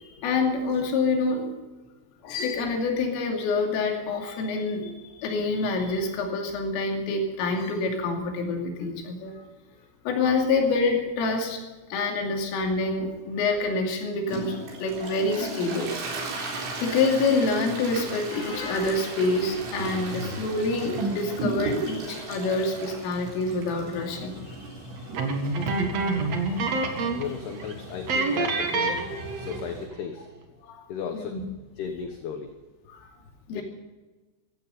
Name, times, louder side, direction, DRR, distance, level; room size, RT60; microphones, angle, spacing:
voice 1, 0.0-1.5 2.2-9.4 10.1-11.6 11.9-16.0 16.4-16.5 16.8-24.8 26.7-26.9 30.6-30.9 31.1-31.4 32.9-33.1 33.5-33.6, left 3 dB, 90° left, 2 dB, 5.2 m, -27 dB
Toilet flush, 14.3-29.9, right 2 dB, 80° right, 6.4 m, -36 dB
sound 1, 25.1-27.3 27.6-27.7 28.1-29.7, right 3 dB, 50° right, 2.0 m, -27 dB
voice 2, 27.0-29.1 29.3-30.3 30.9-31.4 31.8-32.5 33.5-33.6, left 7 dB, 70° left, 6 dB, 2.8 m, -35 dB
16.0 x 15.5 x 5.4 m, 1.2 s
omnidirectional pair, 5.7 m